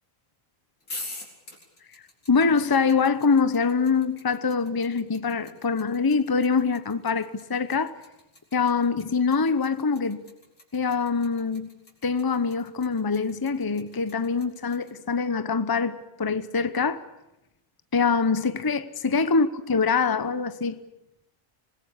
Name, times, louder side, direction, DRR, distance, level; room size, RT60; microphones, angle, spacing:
sound 1, 0.8-14.9, left 2 dB, 90° left, 5.1 m, -44 dB
voice 1, 2.3-7.9 8.5-10.3 10.7-11.7 12.0-17.0 17.9-20.8, left 5 dB, 20° left, 0.8 m, -24 dB
25.5 x 20.0 x 8.4 m
omnidirectional pair, 1.5 m